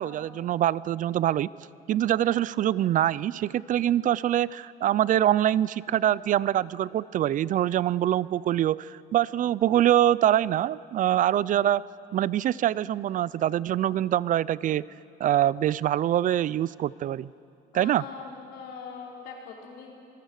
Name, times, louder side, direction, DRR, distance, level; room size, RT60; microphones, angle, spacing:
voice 1, 0.0-1.5 1.9-11.8 12.1-14.8 15.2-17.3 17.7-18.0, right 12 dB, 50° right, 21 dB, 0.4 m, -24 dB
voice 2, 17.7-19.9, left 5 dB, 90° left, -2 dB, 4.9 m, -42 dB
26.5 x 20.5 x 6.6 m, 2.5 s
cardioid pair, 110°, 17 cm